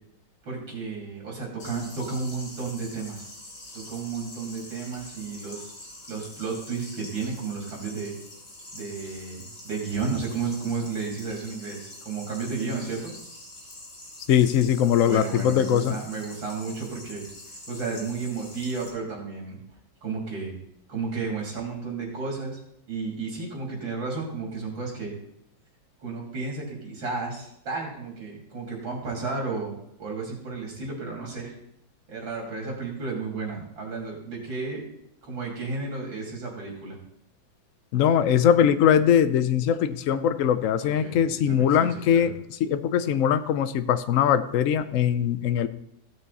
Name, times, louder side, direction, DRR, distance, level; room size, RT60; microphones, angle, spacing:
voice 1, 0.4-3.3 3.7-5.7 6.1-8.1 8.7-13.1 15.1-19.6 20.0-20.5 20.9-22.6 22.9-25.1 26.0-31.6 32.1-34.8 35.2-37.0 40.8-42.3, right 4 dB, 85° right, -2 dB, 3.7 m, -33 dB
sound 1, 1.6-18.9, left 1 dB, 35° left, 2.7 m, -45 dB
voice 2, 14.3-16.0 37.9-45.7, left 9 dB, 70° left, 11 dB, 0.7 m, -21 dB
15.5 x 6.5 x 4.1 m, 0.75 s
omnidirectional pair, 2.1 m